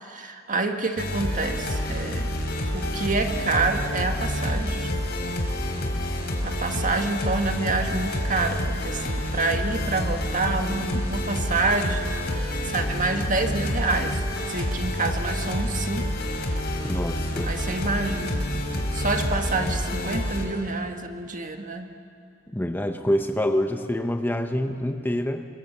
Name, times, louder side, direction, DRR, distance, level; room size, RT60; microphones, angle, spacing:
voice 1, 0.0-2.4 2.7-4.9 6.4-12.0 12.3-14.2 14.5-16.0 17.4-18.5 18.9-21.9, right 3 dB, 40° right, 5 dB, 1.7 m, -27 dB
sound 1, 1.0-20.5, left 1 dB, 55° left, 3.8 m, -28 dB
voice 2, 16.8-17.5 22.5-25.5, left 1 dB, 10° left, 6 dB, 0.9 m, -26 dB
27.5 x 24.0 x 7.4 m, 2.4 s
head